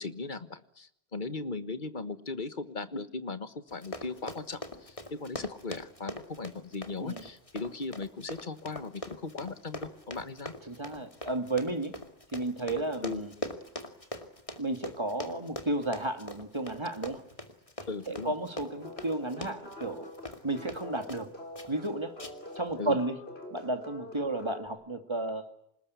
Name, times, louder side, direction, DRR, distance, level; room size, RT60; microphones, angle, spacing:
voice 1, 0.0-10.5 13.0-13.2 17.9-18.3 22.8-23.0, left 3 dB, 50° left, 11 dB, 1.5 m, -38 dB
Run, 3.7-21.3 21.5-21.9 22.2-22.6 22.9-23.0, left 1 dB, 30° left, 2.4 m, -42 dB
voice 2, 10.7-12.0 12.3-13.3 14.6-17.2 18.1-20.1 20.4-21.3 21.7-22.1 22.5-23.2 23.5-25.5, right 2 dB, 25° right, 7 dB, 2.3 m, -33 dB
sound 1, 18.7-24.7, left 1 dB, 75° left, 4.4 m, -46 dB
27.5 x 20.0 x 9.5 m, 0.77 s
omnidirectional pair, 1.1 m